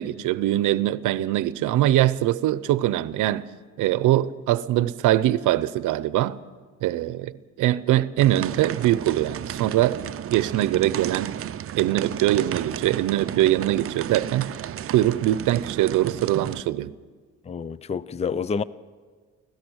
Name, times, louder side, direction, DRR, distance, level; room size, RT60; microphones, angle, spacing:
voice 1, 0.0-3.5 3.8-6.4 6.8-10.0 10.3-11.3 11.8-14.5 14.9-16.9, right 14 dB, 85° right, 0.7 m, -22 dB
sound 1, 8.2-16.6, right 10 dB, 50° right, 0.6 m, -33 dB
voice 2, 17.5-18.6, left 6 dB, 20° left, 0.5 m, -28 dB
25.0 x 17.0 x 6.4 m
cardioid pair, 90°, 30 cm